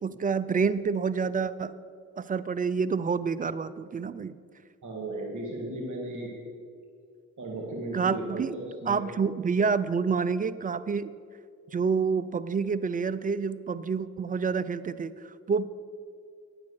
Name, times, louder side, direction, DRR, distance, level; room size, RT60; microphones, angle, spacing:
voice 1, 0.0-1.8 2.2-4.4 7.9-8.6 8.9-11.1 11.7-15.7, right 5 dB, 25° right, 14 dB, 0.4 m, -28 dB
voice 2, 4.8-6.3 7.4-9.0, right 1 dB, 50° right, -1 dB, 1.9 m, -35 dB
9.4 x 7.4 x 6.4 m, 2.3 s
hypercardioid pair, 40°, 39 cm